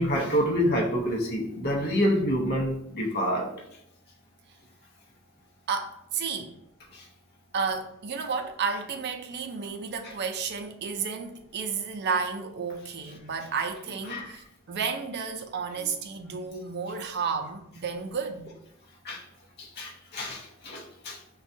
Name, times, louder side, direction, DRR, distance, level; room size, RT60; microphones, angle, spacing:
voice 1, 0.0-3.5 6.9-7.0 10.0-10.1 14.1-14.4 15.8-15.9 19.0-19.2 19.6-21.2, equal, 50° left, 0.7 m, -27 dB
voice 2, 5.7-6.5 7.5-18.5, right 5 dB, 50° right, 0.4 m, -32 dB
6.0 x 2.3 x 2.6 m
head